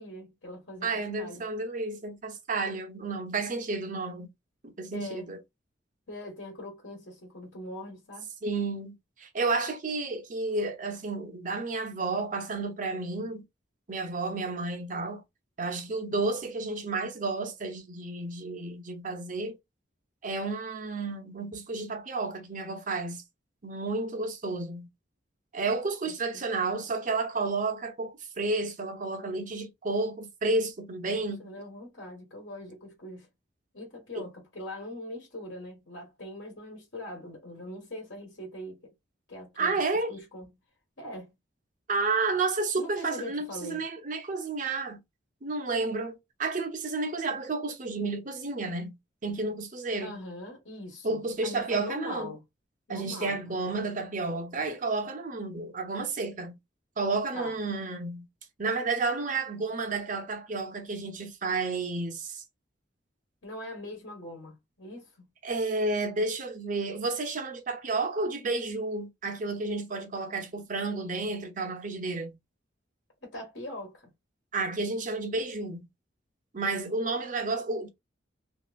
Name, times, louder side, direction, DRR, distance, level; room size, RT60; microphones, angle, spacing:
voice 1, 0.0-1.5 4.9-5.3 6.1-8.3 26.0-26.4 26.8-26.9 31.0-33.3 33.7-38.9 39.3-39.8 40.1-40.5 41.0-41.3 42.8-43.8 50.0-52.4 52.9-53.7 57.3-57.6 63.4-65.3 73.2-74.1, left 1 dB, 80° left, 1.3 m, -42 dB
voice 2, 0.8-4.3 4.6-5.4 8.4-13.4 13.9-15.2 15.6-19.6 20.2-23.2 23.6-24.9 25.5-31.5 34.1-34.3 39.6-40.1 41.9-45.0 45.4-49.0 49.2-50.2 51.0-52.3 52.9-56.6 57.0-58.2 58.6-62.4 65.4-72.3 74.5-75.9 76.5-77.9, right 3 dB, 45° right, 0.7 m, -31 dB
3.0 x 2.8 x 2.4 m
head